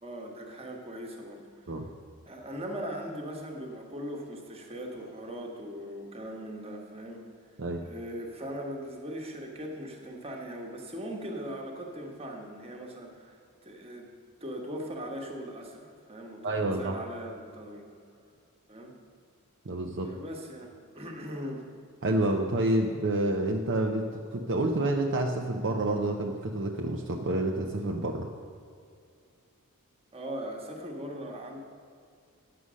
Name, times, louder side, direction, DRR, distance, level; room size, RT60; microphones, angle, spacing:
voice 1, 0.0-1.7 2.3-7.2 7.8-14.1 14.4-17.9 18.7-18.9 20.0-21.7 30.1-31.6, equal, 25° right, 1 dB, 1.4 m, -40 dB
voice 2, 16.4-17.0 19.7-20.1 22.0-28.3, right 1 dB, 55° right, 1 dB, 0.6 m, -28 dB
9.7 x 6.9 x 6.2 m, 2.3 s
head